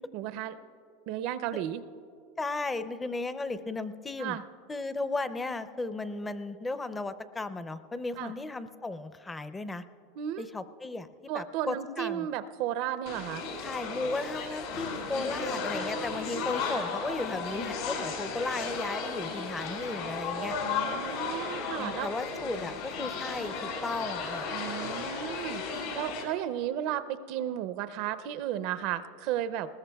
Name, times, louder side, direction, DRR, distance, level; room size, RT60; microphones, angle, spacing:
voice 1, 0.1-0.6 1.1-1.8 4.2-4.4 8.2-8.3 10.2-10.5 11.3-13.4 16.3-16.6 20.6-22.1 24.5-25.6 25.9-29.7, right 11 dB, 55° right, 13 dB, 0.5 m, -34 dB
voice 2, 2.4-4.4 4.7-9.8 10.4-11.1 11.3-12.3 13.6-20.5 21.8-24.6, left 3 dB, 15° left, 12 dB, 0.5 m, -35 dB
sound 1, 13.1-26.2, left 4 dB, 75° left, 3.8 m, -34 dB
20.5 x 19.5 x 2.3 m, 2.5 s
supercardioid pair, 135°, 0 cm